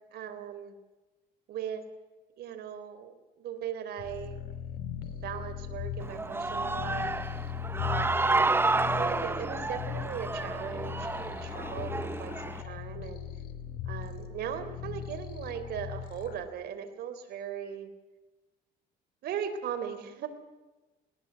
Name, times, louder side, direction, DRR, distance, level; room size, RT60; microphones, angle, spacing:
voice 1, 0.1-0.7 1.5-1.8 2.4-4.4 5.1-7.1 7.9-8.3 8.7-11.9 12.2-13.2 13.9-17.9 19.2-20.3, right 8 dB, 70° right, 9 dB, 3.7 m, -38 dB
sound 1, 4.0-16.5, left 8 dB, 65° left, 3.3 m, -39 dB
Human voice / Cheering, 6.0-12.6, right 3 dB, 15° right, 0.8 m, -30 dB
21.0 x 19.5 x 8.2 m, 1.1 s
cardioid pair, 110°, 17 cm